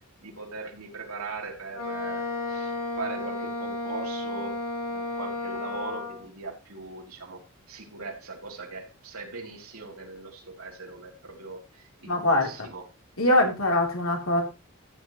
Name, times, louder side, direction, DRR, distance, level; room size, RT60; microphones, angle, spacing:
voice 1, 0.2-4.6 4.9-7.4 7.7-12.9, right 3 dB, 80° right, 3.3 m, -40 dB
Wind instrument woodwind instrument, 1.7-6.2, left 2 dB, 85° left, 5.5 m, -33 dB
voice 2, 12.1-12.5 13.2-14.4, left 1 dB, 70° left, 3.7 m, -22 dB
15.0 x 8.7 x 3.2 m
head